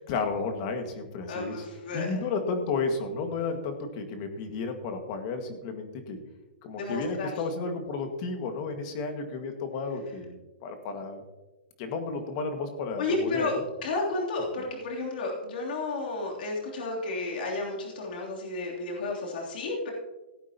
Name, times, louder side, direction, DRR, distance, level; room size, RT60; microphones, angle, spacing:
voice 1, 0.1-1.6 1.9-6.2 6.6-11.2 11.8-13.5, left 4 dB, 40° left, 6 dB, 1.8 m, -32 dB
voice 2, 1.3-2.2 6.8-7.3 13.0-19.9, left 3 dB, 60° left, -2 dB, 3.2 m, -32 dB
17.0 x 8.9 x 2.9 m, 1.1 s
hypercardioid pair, 155°, 6 cm